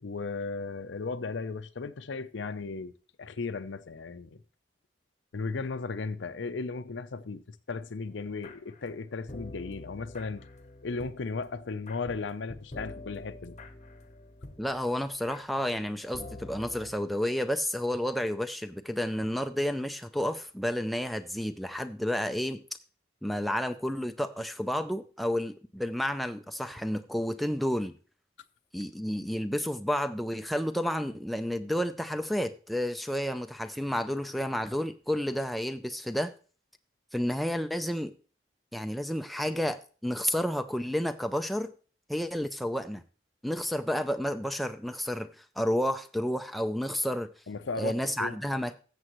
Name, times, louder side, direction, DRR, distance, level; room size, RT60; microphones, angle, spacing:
voice 1, 0.0-2.9 3.2-4.4 5.3-10.5 10.8-13.6 47.5-48.4, left 4 dB, 85° left, 0.6 m, -36 dB
sound 1, 8.1-16.9, left 2 dB, 40° left, 0.9 m, -47 dB
voice 2, 14.6-22.6 23.2-27.9 28.7-36.3 37.1-38.1 38.7-41.7 42.1-43.0 43.4-47.3 47.8-48.8, equal, ahead, 0.4 m, -31 dB
14.0 x 7.6 x 3.0 m
head